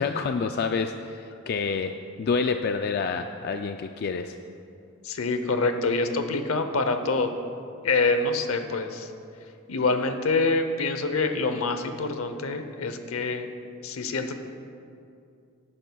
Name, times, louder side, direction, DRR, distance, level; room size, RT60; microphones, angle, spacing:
voice 1, 0.0-1.9 2.2-4.4, left 5 dB, 45° left, 7 dB, 0.3 m, -28 dB
voice 2, 5.0-7.3 7.8-9.1 9.7-13.5 13.8-14.3, left 3 dB, 80° left, 8 dB, 0.8 m, -26 dB
17.0 x 10.0 x 2.3 m, 2.5 s
head